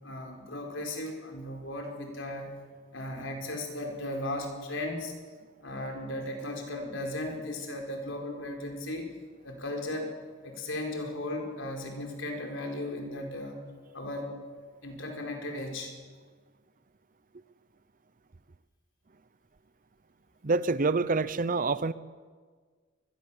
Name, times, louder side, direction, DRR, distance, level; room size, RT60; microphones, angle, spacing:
voice 1, 0.0-2.6 2.9-5.1 5.6-9.1 9.4-10.1 10.4-13.7 13.9-14.3 14.8-15.9, left 1 dB, 65° left, 2 dB, 4.7 m, -36 dB
voice 2, 20.4-21.9, right 3 dB, 40° right, 16 dB, 0.7 m, -26 dB
24.0 x 21.0 x 7.3 m, 1.6 s
head